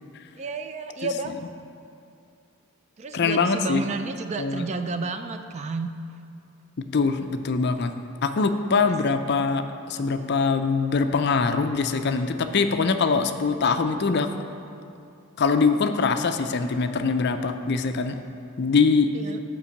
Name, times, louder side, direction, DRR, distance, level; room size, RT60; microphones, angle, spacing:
voice 1, 0.4-1.4 3.0-5.9 19.1-19.4, right 3 dB, 30° right, 8 dB, 0.3 m, -31 dB
voice 2, 3.1-3.8 4.4-4.7 6.9-7.9 8.2-14.3 15.4-18.2 18.6-19.1, left 4 dB, 50° left, 8 dB, 0.4 m, -23 dB
8.5 x 5.2 x 7.0 m, 2.6 s
head